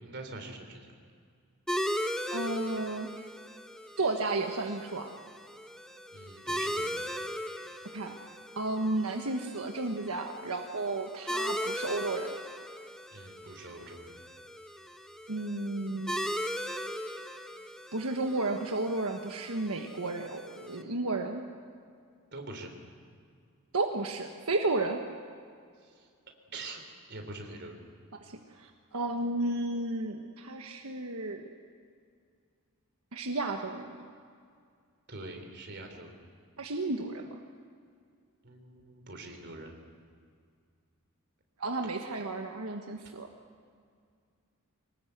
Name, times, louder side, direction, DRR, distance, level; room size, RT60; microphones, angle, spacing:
voice 1, 0.0-0.9 6.1-7.1 13.1-14.2 22.3-22.7 25.8-26.1 26.5-26.8 27.1-27.8 35.1-36.2 38.4-39.8, right 2 dB, 50° right, 4 dB, 3.5 m, -44 dB
sound 1, 1.7-20.8, equal, 5° left, 1.0 m, -38 dB
voice 2, 2.3-3.2 4.0-5.1 7.9-8.1 8.5-12.3 15.3-16.2 17.9-21.4 23.7-25.0 28.2-31.5 33.1-33.9 36.6-37.4 41.6-43.3, right 2 dB, 85° right, 3 dB, 1.4 m, -33 dB
24.5 x 19.5 x 8.0 m, 2.2 s
head